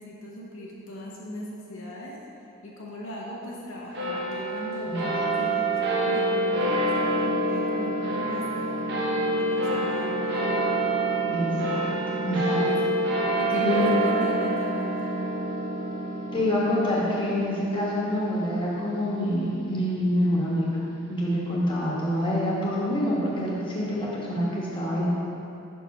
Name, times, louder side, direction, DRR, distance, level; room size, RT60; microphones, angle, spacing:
voice 1, 0.0-2.2 2.6-9.1 9.4-10.4 12.7-12.8 13.4-15.1, equal, 65° left, -4 dB, 0.9 m, -39 dB
sound 1, 3.9-20.7, right 1 dB, 50° right, 0.9 m, -27 dB
voice 2, 11.3-11.8 12.2-12.6 13.5-13.9 16.3-20.8 21.1-25.1, equal, 20° left, -7 dB, 1.2 m, -26 dB
5.7 x 4.7 x 5.3 m, 2.7 s
head